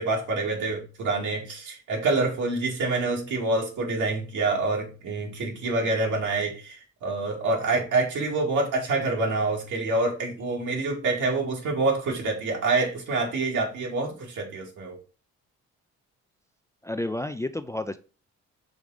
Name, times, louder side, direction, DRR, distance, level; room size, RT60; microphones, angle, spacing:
voice 1, 0.0-15.0, right 3 dB, 75° right, 0 dB, 2.3 m, -26 dB
voice 2, 16.8-18.0, left 1 dB, 10° left, 10 dB, 0.4 m, -30 dB
5.2 x 3.7 x 4.8 m, 0.35 s
cardioid pair, 90°, 30 cm